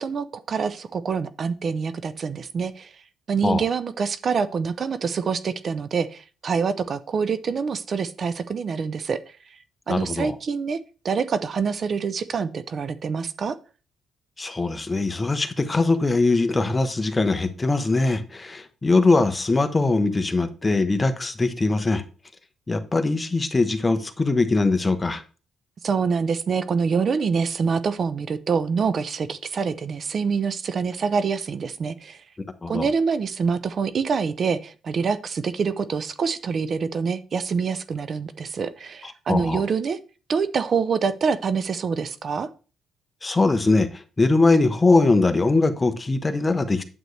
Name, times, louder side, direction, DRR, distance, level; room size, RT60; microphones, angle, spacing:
voice 1, 0.0-2.9 3.3-9.2 9.9-10.8 11.0-13.6 25.8-32.2 32.7-40.0 40.3-42.5, right 5 dB, 50° right, 0.6 m, -26 dB
voice 2, 9.9-10.3 14.4-22.0 22.7-25.2 32.6-32.9 39.0-39.6 43.2-46.8, left 3 dB, 20° left, 1.1 m, -21 dB
9.2 x 7.8 x 3.3 m
cardioid pair, 90°, 0 cm